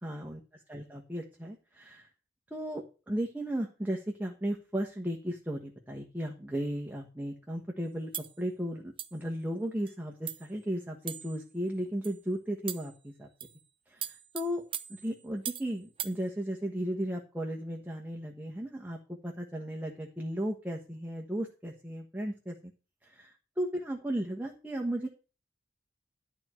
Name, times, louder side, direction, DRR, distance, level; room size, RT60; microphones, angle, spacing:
voice 1, 0.0-0.4 0.7-2.1 2.5-13.3 13.9-14.6 14.9-22.6 23.0-25.1, equal, 10° right, 0 dB, 1.4 m, -35 dB
sound 1, 8.1-8.4 9.0-9.2 9.9-10.0 10.3-10.5 11.1-11.4 12.0-12.2 12.7-13.0 13.4-13.6 14.0-15.7 16.0-16.2, right 10 dB, 30° right, 0.7 m, -39 dB
11.5 x 4.6 x 7.4 m, 0.33 s
head